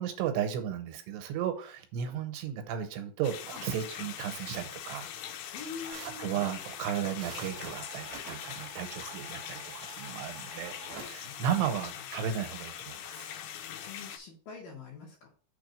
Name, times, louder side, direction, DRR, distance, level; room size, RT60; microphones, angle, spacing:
voice 1, 0.0-5.1 5.9-13.3, right 9 dB, 85° right, 7 dB, 2.9 m, -34 dB
sound 1, 3.2-14.2, left 10 dB, 85° left, 2.2 m, -42 dB
voice 2, 5.5-6.5 11.2-11.6 11.9-12.0 13.7-15.3, left 5 dB, 60° left, -1 dB, 2.6 m, -45 dB
sound 2, 5.9-11.0, right 6 dB, 65° right, 1.8 m, -48 dB
6.6 x 3.4 x 5.1 m, 0.40 s
omnidirectional pair, 4.9 m